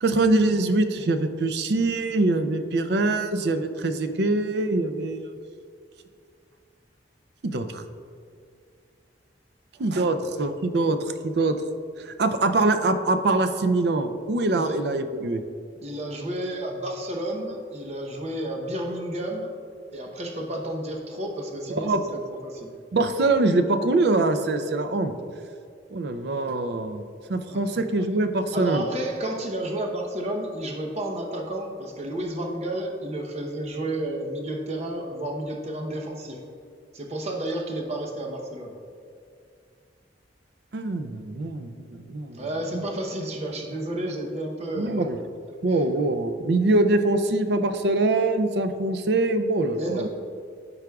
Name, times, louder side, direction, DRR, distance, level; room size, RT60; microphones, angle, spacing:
voice 1, 0.0-5.2 7.4-7.8 9.8-11.0 11.2-11.5 12.0-15.4 21.7-22.0 22.9-25.1 25.9-27.0 27.3-28.8 40.7-42.4 42.7-42.8 44.8-45.2 45.6-50.1, right 2 dB, 65° right, 9 dB, 0.5 m, -23 dB
voice 2, 9.7-10.2 14.5-14.8 15.8-19.5 19.9-22.7 27.5-27.6 28.5-36.4 36.9-38.7 42.3-45.1 45.7-45.8 49.7-50.1, right 1 dB, 40° right, 1 dB, 0.8 m, -31 dB
13.5 x 4.9 x 2.3 m, 2.3 s
head